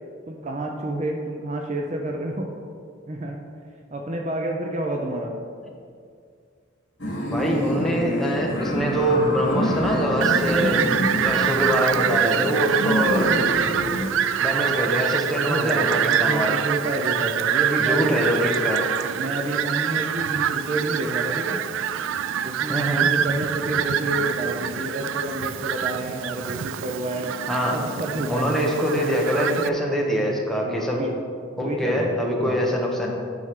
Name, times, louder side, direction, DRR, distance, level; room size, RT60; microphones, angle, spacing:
voice 1, 0.3-2.5 3.1-3.4 3.9-5.3 12.8-13.1 15.3-18.5 19.1-21.6 22.4-27.3 27.7-28.5 30.6-31.2 31.6-32.7, right 1 dB, 35° right, 1 dB, 0.6 m, -29 dB
sound 1, 7.0-14.1, equal, 70° left, 2.0 m, -27 dB
voice 2, 7.2-10.9 11.2-13.3 14.4-16.5 17.8-18.8 22.7-23.1 27.5-27.7 28.3-31.0 31.6-33.1, equal, ahead, -2 dB, 1.0 m, -24 dB
Fowl, 10.2-29.7, right 9 dB, 80° right, 0.3 m, -25 dB
9.3 x 7.1 x 3.7 m, 2.3 s
head